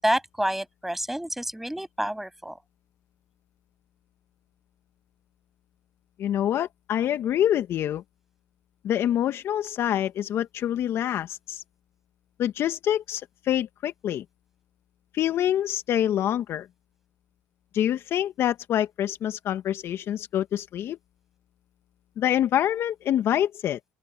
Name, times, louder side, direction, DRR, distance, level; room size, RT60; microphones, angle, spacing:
voice 1, 0.0-2.6, right 1 dB, 5° right, 7.2 m, -28 dB
voice 2, 6.2-8.0 8.8-11.6 12.4-14.2 15.1-16.7 17.7-21.0 22.2-23.8, left 11 dB, 60° left, 1.7 m, -26 dB
open air
supercardioid pair, 65°, 5 cm